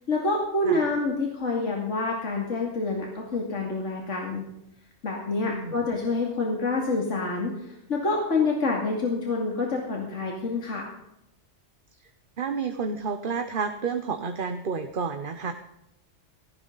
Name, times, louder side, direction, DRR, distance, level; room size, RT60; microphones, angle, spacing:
voice 1, 0.1-4.4 5.0-7.5 7.9-10.9, left 3 dB, 70° left, -1 dB, 2.8 m, -27 dB
voice 2, 5.4-5.9 12.4-15.5, right 5 dB, 45° right, 8 dB, 1.1 m, -30 dB
17.5 x 16.0 x 4.0 m, 0.84 s
omnidirectional pair, 1.3 m